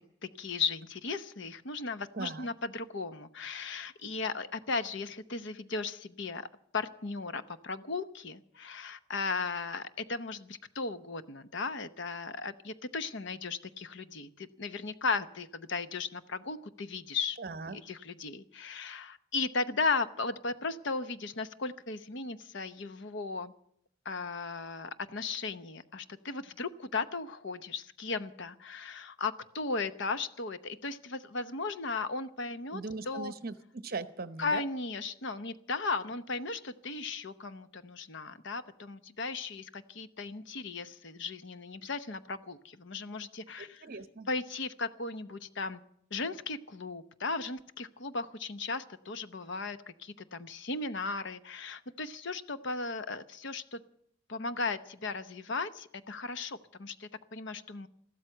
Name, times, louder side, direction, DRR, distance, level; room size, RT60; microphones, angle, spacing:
voice 1, 0.2-6.5 6.7-17.4 17.7-23.5 24.0-32.8 33.1-33.3 34.4-43.9 44.3-45.8 46.1-53.8 54.3-57.9, left 4 dB, 55° left, 13 dB, 0.8 m, -36 dB
voice 2, 2.1-2.5 17.4-17.8 32.7-34.6 43.8-44.3, right 3 dB, 45° right, 13 dB, 0.9 m, -39 dB
14.5 x 13.0 x 7.7 m, 0.69 s
head